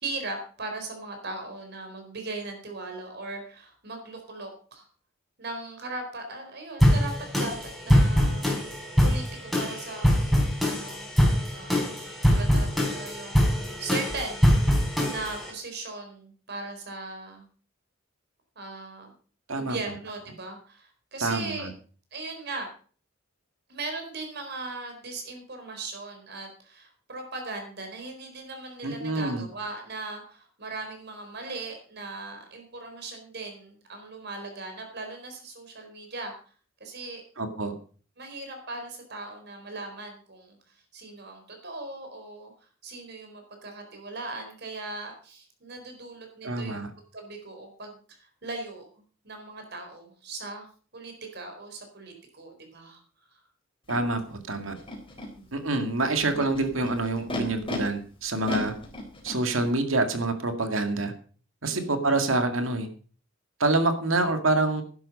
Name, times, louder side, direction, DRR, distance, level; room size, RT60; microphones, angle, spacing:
voice 1, 0.0-4.9 5.4-7.5 7.8-8.5 9.0-10.4 10.6-11.1 11.5-17.5 18.6-19.1 19.5-21.7 22.1-22.7 23.7-36.3 36.8-37.2 38.2-40.6 40.9-42.5 42.8-46.9 47.1-48.9 49.2-50.7 50.9-53.0 53.3-53.4 55.3-55.7 61.6-62.0, right 3 dB, 55° right, 4 dB, 4.3 m, -39 dB
sound 1, 6.8-15.5, equal, ahead, 3.9 m, -23 dB
voice 2, 21.2-21.7 28.8-29.4 37.4-37.7 46.4-46.9 53.9-54.7 55.5-58.7 59.2-61.1 61.6-62.9 63.6-64.8, right 2 dB, 80° right, 7 dB, 2.1 m, -26 dB
Animal, 53.9-54.0 54.8-55.3 56.1-57.8 58.4-59.7, left 2 dB, 25° left, 3.7 m, -35 dB
11.5 x 11.0 x 5.3 m, 0.42 s
head